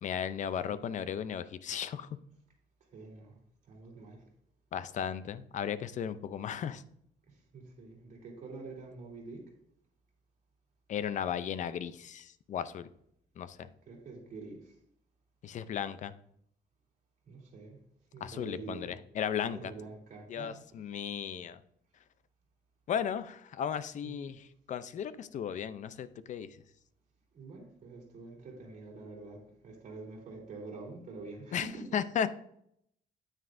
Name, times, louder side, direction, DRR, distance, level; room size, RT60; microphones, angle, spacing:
voice 1, 0.0-2.1 4.7-6.8 10.9-12.9 13.4-13.7 15.4-16.1 18.2-19.7 20.3-21.6 22.9-26.6 31.5-31.7 31.9-32.3, left 8 dB, 45° left, 14 dB, 0.5 m, -35 dB
voice 2, 2.9-3.3 3.6-4.2 7.3-9.4 13.8-14.8 17.2-17.8 18.1-18.9 19.5-20.6 24.0-24.3 27.3-32.0, right 3 dB, 45° right, -2 dB, 3.2 m, -46 dB
9.4 x 8.9 x 2.6 m, 0.71 s
cardioid pair, 160°, 17 cm